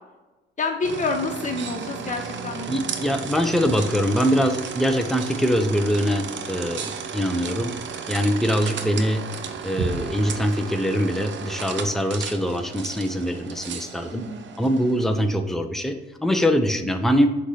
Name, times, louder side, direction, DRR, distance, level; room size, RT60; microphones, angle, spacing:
voice 1, 0.6-2.8 3.4-3.7 14.1-14.9 16.6-16.7, left 3 dB, 40° left, 3 dB, 1.3 m, -29 dB
sound 1, 0.8-15.2, right 6 dB, 70° right, 0.7 m, -34 dB
voice 2, 2.7-7.7 8.1-9.2 9.6-14.2 14.6-15.9 16.2-17.3, equal, ahead, 6 dB, 0.7 m, -23 dB
6.2 x 3.2 x 5.6 m, 1.1 s
cardioid pair, 90°, 20 cm